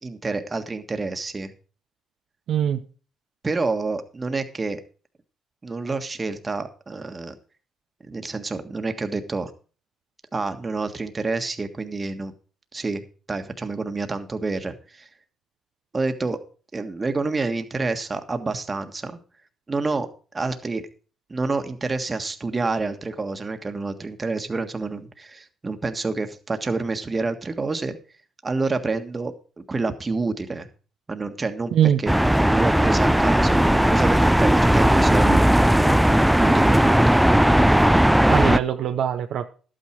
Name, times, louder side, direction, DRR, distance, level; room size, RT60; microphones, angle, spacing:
voice 1, 0.0-1.5 3.4-4.8 5.6-7.4 8.1-9.5 10.3-12.3 12.7-13.0 13.3-15.1 15.9-16.4 16.7-19.2 19.7-20.1 20.3-20.8 21.3-28.0 28.4-30.7 31.1-37.2, right 3 dB, 30° right, 1.6 m, -28 dB
voice 2, 2.5-2.8 31.7-32.0 35.1-35.4 38.2-39.5, right 10 dB, 70° right, 0.7 m, -22 dB
sound 1, 32.1-38.6, equal, 5° right, 0.5 m, -17 dB
11.5 x 8.8 x 4.7 m
supercardioid pair, 75°, 0 cm